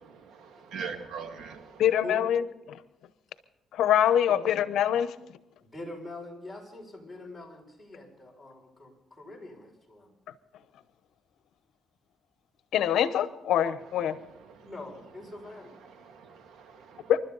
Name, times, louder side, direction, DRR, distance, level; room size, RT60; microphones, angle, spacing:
voice 1, 0.0-1.8 14.5-14.7 16.0-17.1, right 6 dB, 75° right, 6 dB, 2.1 m, -42 dB
voice 2, 1.8-2.4 2.7-2.8 3.7-5.1 12.7-14.2 17.1-17.2, left 10 dB, 80° left, 13 dB, 0.9 m, -24 dB
voice 3, 5.6-10.1 14.6-15.8, left 2 dB, 5° left, -2 dB, 6.1 m, -43 dB
28.5 x 12.5 x 4.0 m, 0.92 s
cardioid pair, 90°, 0 cm